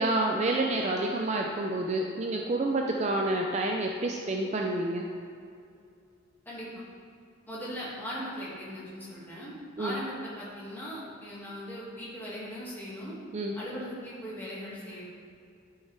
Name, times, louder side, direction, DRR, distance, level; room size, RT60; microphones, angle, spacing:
voice 1, 0.0-5.1 9.8-10.0 13.3-13.5, right 2 dB, 35° right, 1 dB, 0.4 m, -28 dB
voice 2, 6.5-6.8 7.5-9.5 9.8-13.1 13.5-15.1, equal, 10° left, -8 dB, 2.0 m, -39 dB
11.0 x 5.6 x 3.4 m, 2.4 s
head